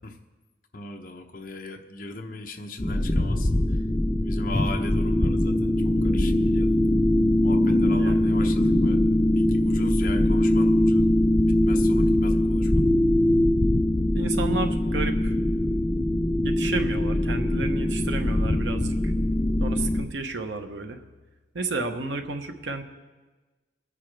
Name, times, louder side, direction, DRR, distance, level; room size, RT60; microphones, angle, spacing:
voice 1, 0.7-3.5 4.2-6.7 7.4-9.0 9.3-11.1 11.5-12.8, left 2 dB, 45° left, 3 dB, 0.9 m, -38 dB
sound 1, 2.8-20.0, left 1 dB, 20° left, 0.5 m, -22 dB
voice 2, 7.9-8.3 14.1-15.3 16.4-19.1 19.6-21.0 21.5-22.8, right 3 dB, 75° right, 6 dB, 1.0 m, -32 dB
23.0 x 9.8 x 3.4 m, 1.3 s
head